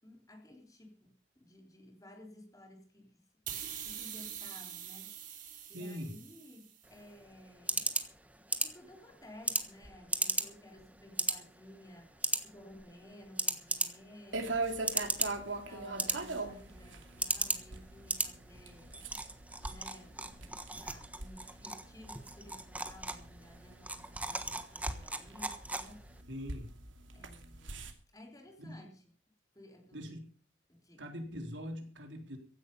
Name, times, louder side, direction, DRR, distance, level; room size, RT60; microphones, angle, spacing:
voice 1, 0.0-3.3 3.6-5.3 5.7-7.9 8.4-14.6 15.1-19.0 19.6-26.3 27.1-29.1 29.5-30.2 30.7-31.1, left 1 dB, 20° left, 3.6 m, -55 dB
sound 1, 3.5-6.8, right 9 dB, 45° right, 3.5 m, -44 dB
voice 2, 5.7-6.2 26.3-26.7 28.7-28.8 29.9-30.3 31.0-32.4, equal, 70° right, 3.7 m, -42 dB
sound 2, 6.8-26.2, right 2 dB, 10° right, 1.3 m, -38 dB
sound 3, 14.3-27.9, right 3 dB, 90° right, 2.6 m, -42 dB
15.5 x 11.5 x 5.5 m
head